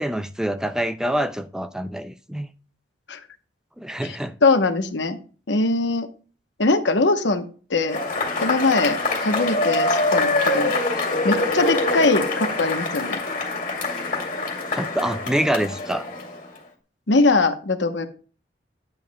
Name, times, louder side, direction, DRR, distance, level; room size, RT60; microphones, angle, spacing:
voice 1, 0.0-2.5 3.8-4.3 14.7-16.1, right 1 dB, 5° right, 0.3 m, -26 dB
voice 2, 4.4-5.2 5.5-6.1 6.6-7.4 7.7-8.0 8.4-10.7 11.2-13.2 17.1-18.1, left 3 dB, 80° left, 1.0 m, -21 dB
Cheering / Applause / Crowd, 7.9-16.6, left 2 dB, 45° left, 2.3 m, -24 dB
10.0 x 7.3 x 2.2 m
head